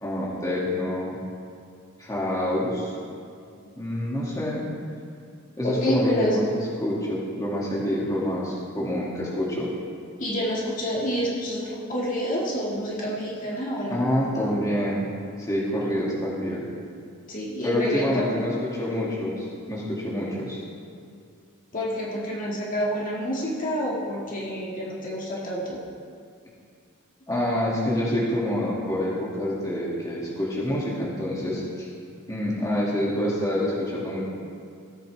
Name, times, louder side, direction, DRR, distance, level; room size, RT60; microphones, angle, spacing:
voice 1, 0.0-1.2 2.0-2.9 3.8-4.7 5.6-9.7 13.9-15.0 15.4-16.6 17.6-20.6 27.3-31.9 32.3-34.2, left 1 dB, 15° left, -6 dB, 2.0 m, -27 dB
voice 2, 5.6-6.4 10.2-14.0 17.3-18.4 21.7-25.8, equal, 40° left, -5 dB, 1.8 m, -28 dB
17.0 x 8.6 x 3.3 m, 2.4 s
head